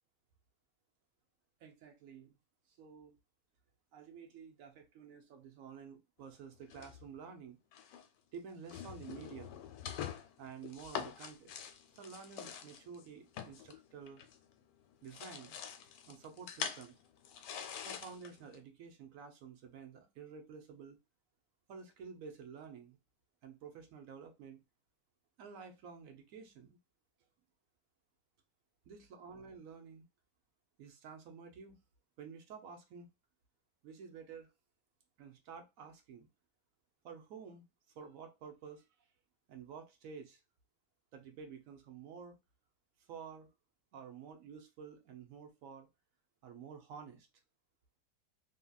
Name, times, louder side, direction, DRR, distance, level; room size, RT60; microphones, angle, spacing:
voice 1, 1.6-2.4 2.7-3.2 3.9-7.6 8.3-9.6 10.4-11.7 11.9-14.2 15.0-15.6 16.1-16.9 17.8-21.0 21.7-23.0 23.4-24.6 25.4-26.8 28.9-30.0 30.8-31.8 32.2-33.1 33.8-34.5 35.2-36.3 37.0-37.6 37.9-38.9 39.5-40.4 41.1-42.4 43.0-43.5 43.9-45.9 46.4-47.3, right 6 dB, 65° right, 0.9 m, -51 dB
sound 1, 6.7-7.3 7.7-8.1 8.5-14.6 14.9-18.6, left 8 dB, 80° left, 1.2 m, -45 dB
2.8 x 2.8 x 2.2 m
omnidirectional pair, 1.8 m